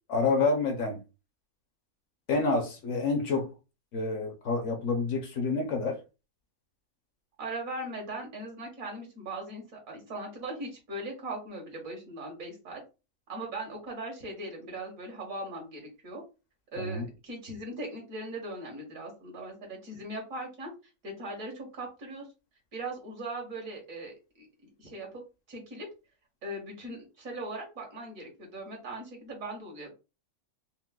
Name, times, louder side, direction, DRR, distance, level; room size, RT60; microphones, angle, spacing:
voice 1, 0.1-1.0 2.3-3.5 3.9-6.0 16.8-17.1, left 3 dB, 65° left, 0.9 m, -28 dB
voice 2, 7.4-12.8 13.3-16.2 16.7-20.7 21.0-22.3 22.7-25.2 25.5-25.9 26.4-29.9, right 1 dB, 70° right, 1.6 m, -39 dB
4.5 x 2.0 x 2.3 m
omnidirectional pair, 1.5 m